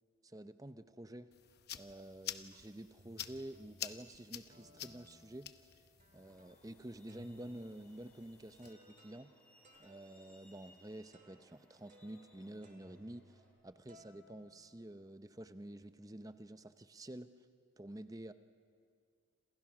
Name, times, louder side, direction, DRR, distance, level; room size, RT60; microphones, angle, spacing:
voice 1, 0.2-1.3 1.7-5.7 6.1-9.3 9.8-17.3 17.8-18.3, right 1 dB, 15° right, 11 dB, 0.7 m, -49 dB
sound 1, 1.3-8.7, left 11 dB, 50° left, 0.9 m, -50 dB
sound 2, 1.5-1.9 2.5-2.6 3.0-4.1 4.5-6.7 7.1-13.6 13.9-15.3, equal, 35° right, 2.1 m, -64 dB
Truck, 6.1-13.5, equal, 5° left, 4.0 m, -67 dB
28.5 x 27.0 x 6.1 m, 2.1 s
head